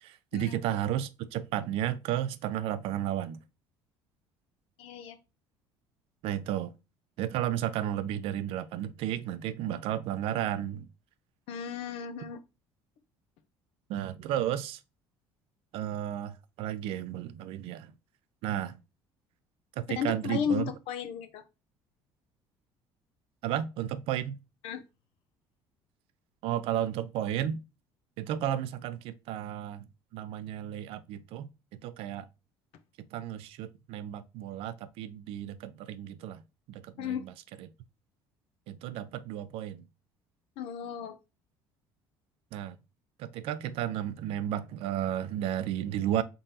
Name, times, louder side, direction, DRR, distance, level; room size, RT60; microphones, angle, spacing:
voice 1, 0.0-3.4 6.2-6.7 7.2-10.9 13.9-14.8 15.7-17.9 18.4-18.7 19.8-20.7 23.4-24.4 26.4-27.6 28.2-31.5 31.8-32.3 33.1-36.4 36.7-37.3 38.7-39.8 42.5-42.8 43.2-46.2, right 11 dB, 70° right, 0.4 m, -33 dB
voice 2, 4.8-5.2 11.5-12.4 20.0-21.4 24.6-24.8 37.0-37.3 40.6-41.2, left 7 dB, 75° left, 0.6 m, -34 dB
3.8 x 3.8 x 2.7 m
supercardioid pair, 95°, 10 cm